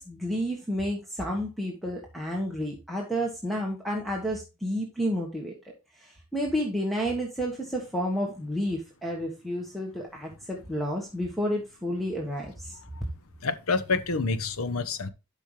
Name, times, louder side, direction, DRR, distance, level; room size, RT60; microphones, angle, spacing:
voice 1, 0.0-5.5 5.9-12.8, equal, ahead, 1.4 m, -31 dB
voice 2, 13.4-15.1, left 4 dB, 80° left, 0.9 m, -28 dB
12.0 x 5.4 x 3.3 m
head